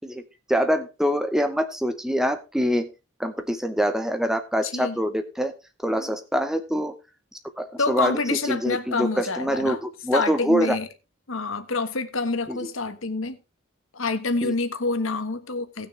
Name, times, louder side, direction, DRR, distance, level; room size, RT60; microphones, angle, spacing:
voice 1, 0.5-2.9 3.2-5.5 5.8-7.0 7.6-8.2 8.5-10.8 12.5-12.6 14.4-14.5, equal, ahead, 0.8 m, -25 dB
voice 2, 4.6-5.0 5.9-6.2 7.8-9.8 10.1-10.9 11.3-13.4 13.9-15.9, left 3 dB, 70° left, 1.3 m, -27 dB
17.5 x 6.4 x 3.2 m
head